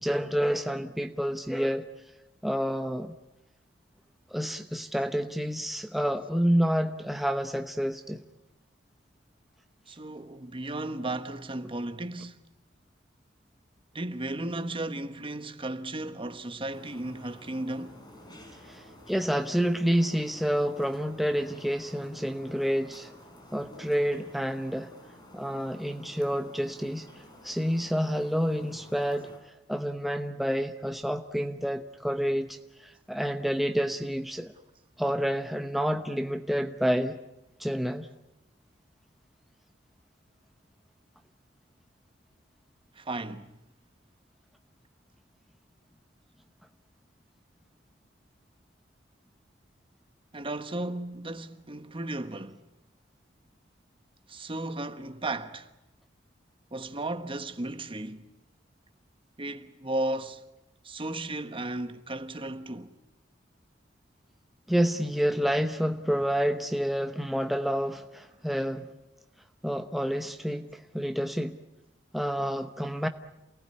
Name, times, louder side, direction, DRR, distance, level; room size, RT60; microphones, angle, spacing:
voice 1, 0.0-1.9 2.4-3.1 4.3-8.2 18.7-23.1 23.5-24.9 25.3-27.1 27.4-29.3 29.7-34.5 35.0-37.2 37.6-38.1 64.7-68.9 69.6-71.6 72.1-73.1, equal, ahead, 0.9 m, -29 dB
voice 2, 9.9-12.4 13.9-18.0 42.9-43.5 50.3-52.6 54.3-55.7 56.7-58.3 59.4-60.4 60.8-63.0, right 2 dB, 30° right, 1.2 m, -35 dB
sound 1, 16.7-29.4, left 1 dB, 25° left, 5.0 m, -51 dB
28.5 x 19.0 x 9.8 m
head